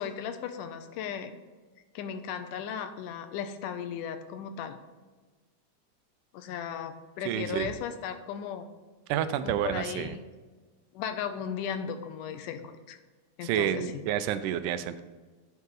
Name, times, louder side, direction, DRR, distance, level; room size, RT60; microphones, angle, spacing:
voice 1, 0.0-1.3 2.0-4.8 6.3-8.7 9.4-10.2 10.9-12.6 12.9-13.0 13.4-14.0, left 8 dB, 90° left, 8 dB, 2.3 m, -36 dB
voice 2, 7.3-7.7 9.1-10.1 13.4-15.0, right 10 dB, 85° right, 12 dB, 2.1 m, -29 dB
10.5 x 5.5 x 3.8 m, 1.3 s
omnidirectional pair, 3.6 m